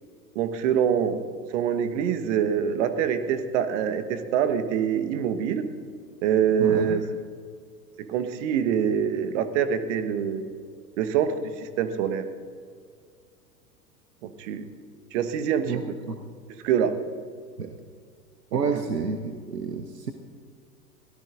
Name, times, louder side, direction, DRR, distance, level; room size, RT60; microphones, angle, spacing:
voice 1, 0.3-1.2 1.5-5.7 6.2-7.0 8.0-10.5 11.0-12.2 14.2-14.7 15.1-15.8 16.6-16.9 18.5-18.6, right 8 dB, 50° right, 10 dB, 1.3 m, -25 dB
voice 2, 6.6-7.0 15.7-15.8 16.1-16.2 17.6-17.7 18.5-20.1, right 5 dB, 85° right, 6 dB, 0.9 m, -29 dB
23.5 x 18.0 x 2.6 m, 2.2 s
figure-of-eight pair, 90°, 47 cm